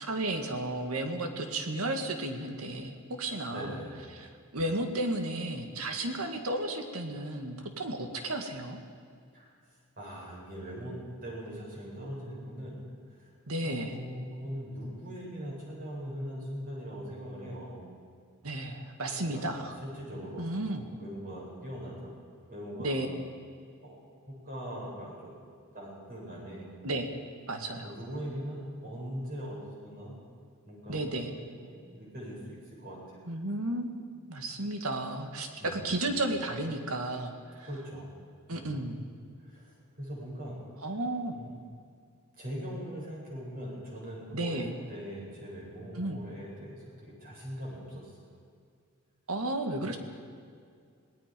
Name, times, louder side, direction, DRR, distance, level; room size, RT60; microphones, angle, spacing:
voice 1, 0.0-3.8 4.1-8.8 13.5-14.0 18.4-19.7 20.4-20.8 22.8-23.1 26.8-27.1 27.5-27.9 30.9-31.3 33.3-34.0 34.3-37.7 38.5-39.0 40.8-41.4 44.3-44.7 46.0-46.2 49.3-50.0, right 1 dB, 80° right, 5 dB, 2.1 m, -33 dB
voice 2, 3.5-4.0 9.3-9.5 10.0-10.9 11.2-12.8 13.1-13.3 13.6-17.9 18.5-18.7 19.3-22.2 22.5-23.0 23.8-24.0 24.3-25.4 25.7-26.7 27.8-30.2 30.6-31.0 31.3-33.3 35.6-35.9 37.7-38.0 38.5-38.7 39.4-40.6 41.4-41.5 42.4-48.2 49.8-50.0, equal, 40° right, -4 dB, 7.9 m, -41 dB
26.5 x 19.0 x 5.4 m, 2.2 s
head